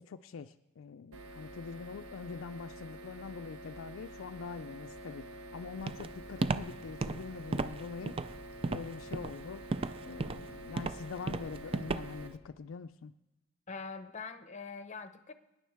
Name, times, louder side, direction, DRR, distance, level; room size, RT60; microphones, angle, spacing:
voice 1, 0.0-8.4 8.6-9.6 10.1-13.1, left 5 dB, 65° left, 10 dB, 0.4 m, -44 dB
sound 1, 1.1-12.3, right 1 dB, 85° right, 1.2 m, -48 dB
Walk footsteps, 5.9-12.3, right 3 dB, 25° right, 0.4 m, -35 dB
voice 2, 13.7-15.3, left 4 dB, 35° left, 10 dB, 0.7 m, -43 dB
25.0 x 10.0 x 3.5 m, 0.98 s
head